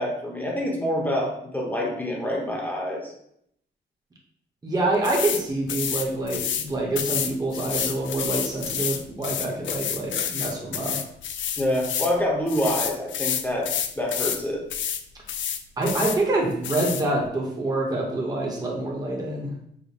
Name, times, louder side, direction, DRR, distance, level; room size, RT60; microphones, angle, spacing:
voice 1, 0.0-3.1 11.6-14.6, equal, 10° left, -2 dB, 0.9 m, -26 dB
voice 2, 4.6-11.0 15.8-19.5, right 2 dB, 20° right, -3 dB, 0.9 m, -26 dB
sound 1, 5.0-5.4 5.7-6.7 7.0-12.1 12.5-14.4 14.7-15.0 15.3-16.2 16.6-17.0, left 8 dB, 80° left, 0.4 m, -29 dB
5.0 x 2.1 x 4.2 m, 0.72 s
wide cardioid pair, 160°, 19 cm